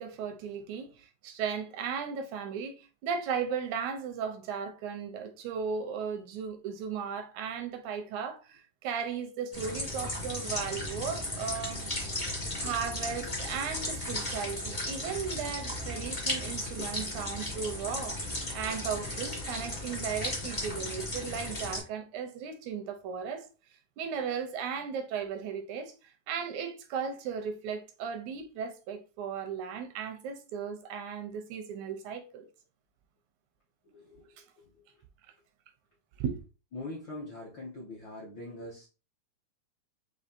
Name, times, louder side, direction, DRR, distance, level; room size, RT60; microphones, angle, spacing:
voice 1, 0.0-11.9 12.6-18.2 18.5-23.5 24.0-25.9 26.3-32.5 36.2-36.4, right 6 dB, 80° right, 2.0 m, -36 dB
sound 1, 9.5-21.8, left 1 dB, 45° left, 0.5 m, -35 dB
voice 2, 33.8-34.8 36.7-38.9, left 2 dB, 70° left, 1.1 m, -43 dB
6.2 x 2.8 x 2.7 m
omnidirectional pair, 3.5 m